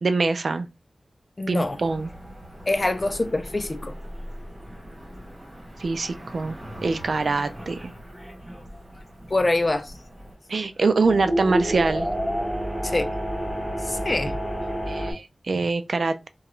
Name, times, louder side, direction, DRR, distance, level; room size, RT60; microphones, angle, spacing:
voice 1, 0.0-0.7 1.5-2.1 5.8-6.6 6.8-7.9 10.5-12.1 14.9-16.3, right 3 dB, 70° right, 0.3 m, -24 dB
voice 2, 1.4-1.8 2.7-3.9 9.3-9.9 12.8-13.2 13.8-14.4, left 2 dB, 35° left, 0.4 m, -25 dB
Cricket / Motor vehicle (road), 1.6-10.3, equal, 40° right, 1.3 m, -43 dB
sound 1, 2.8-6.4 6.8-6.9 7.4-9.0 9.6-9.7 11.0-15.1, equal, 20° right, 1.7 m, -30 dB
2.8 x 2.3 x 3.0 m
wide cardioid pair, 90°, 0 cm